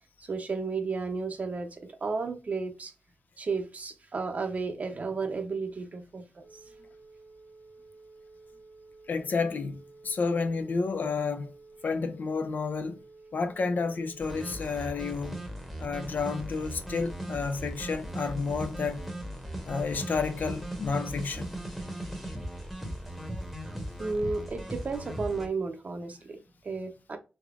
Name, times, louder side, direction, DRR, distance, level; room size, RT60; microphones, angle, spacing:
voice 1, 0.3-2.9 3.4-6.4 24.0-27.2, right 4 dB, 50° right, 0.6 m, -33 dB
Telephone, 6.4-14.7, right 3 dB, 90° right, 1.2 m, -53 dB
voice 2, 9.1-11.5 11.8-13.0 13.3-15.4 15.8-19.0 19.6-21.5, left 4 dB, 70° left, 0.5 m, -30 dB
sound 1, 14.2-25.5, right 1 dB, ahead, 0.9 m, -38 dB
3.5 x 3.4 x 2.4 m
wide cardioid pair, 130°, 3 cm